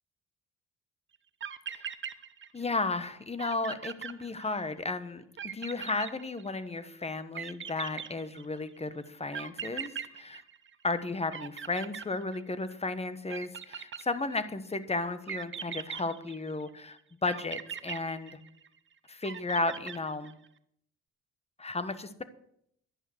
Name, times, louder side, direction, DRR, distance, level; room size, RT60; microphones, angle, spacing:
sound 1, 1.1-1.2 1.4-2.8 3.1-3.2 3.4-4.8 5.4-6.8 7.3-8.7 9.3-11.0 11.3-12.7 13.3-14.5 15.3-16.7 17.3-18.8 19.2-20.5, right 8 dB, 40° right, 0.9 m, -40 dB
voice 1, 2.5-10.4 10.8-18.4 19.1-20.3 21.6-22.2, left 3 dB, 20° left, 13 dB, 1.3 m, -34 dB
11.0 x 11.0 x 7.9 m, 0.72 s
cardioid pair, 90°, 30 cm